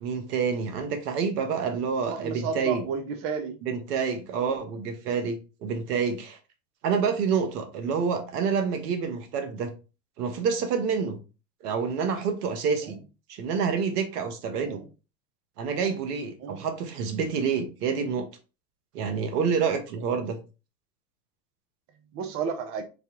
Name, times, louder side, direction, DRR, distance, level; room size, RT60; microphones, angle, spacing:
voice 1, 0.0-2.8 3.6-6.4 6.8-9.7 10.2-11.2 11.6-13.0 13.3-14.8 15.6-18.3 18.9-20.4, right 6 dB, 65° right, 1.0 m, -28 dB
voice 2, 2.0-3.6 4.3-4.5 6.9-7.0 7.9-8.0 12.8-13.0 14.6-14.9 16.4-16.6 20.1-20.2 22.1-22.8, right 6 dB, 30° right, 0.5 m, -33 dB
3.1 x 2.8 x 3.6 m
hypercardioid pair, 100°, 50 cm